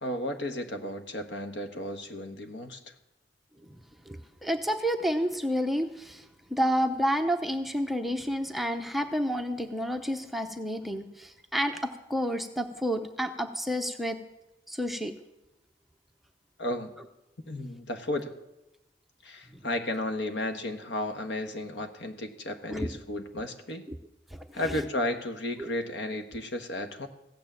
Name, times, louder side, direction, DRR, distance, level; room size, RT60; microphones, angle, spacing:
voice 1, 0.0-2.8 16.6-16.9 17.5-18.3 19.2-23.8 24.5-27.1, left 1 dB, 70° left, 6 dB, 1.3 m, -33 dB
voice 2, 4.1-6.3 6.5-14.2 14.7-15.1 22.7-22.9 23.9-24.0 25.6-25.7, equal, ahead, 5 dB, 0.7 m, -30 dB
15.5 x 9.2 x 7.4 m, 0.94 s
head